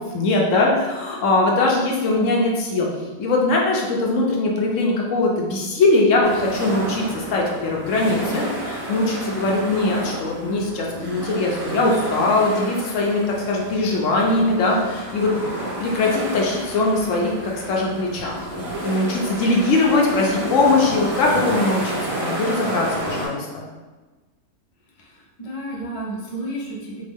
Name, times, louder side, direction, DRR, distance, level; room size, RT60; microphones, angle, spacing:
voice 1, 0.0-2.9 3.2-15.3 15.8-23.6, left 2 dB, 70° left, -1 dB, 0.9 m, -21 dB
sound 1, 6.2-23.3, right 1 dB, 75° right, 1.6 m, -31 dB
voice 2, 11.7-12.4 25.4-27.0, right 3 dB, 40° left, -4 dB, 0.5 m, -30 dB
3.5 x 2.2 x 3.4 m, 1.2 s
omnidirectional pair, 1.4 m